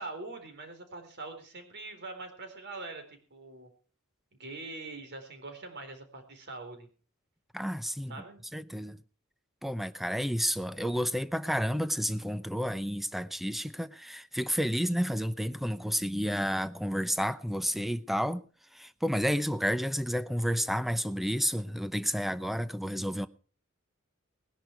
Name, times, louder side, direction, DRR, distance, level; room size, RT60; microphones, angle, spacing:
voice 1, 0.0-3.7 4.3-6.9 8.1-8.4, right 3 dB, 55° right, 4.1 m, -43 dB
voice 2, 7.5-8.1 8.5-9.0 9.6-18.4 18.7-23.3, equal, ahead, 0.7 m, -31 dB
19.5 x 10.5 x 4.7 m
head